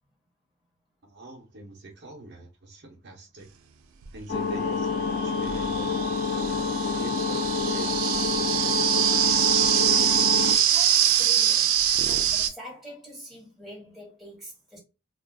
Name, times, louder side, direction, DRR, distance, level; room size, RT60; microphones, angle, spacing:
voice 1, 1.0-3.5 4.1-6.6 7.0-8.8, right 1 dB, 50° right, 0.7 m, -44 dB
sound 1, 4.0-4.1 5.0-12.5, right 10 dB, 85° right, 0.5 m, -24 dB
sound 2, 4.3-10.5, left 5 dB, 50° left, 0.8 m, -28 dB
voice 2, 10.4-14.8, equal, ahead, 1.4 m, -45 dB
2.5 x 2.3 x 3.4 m
head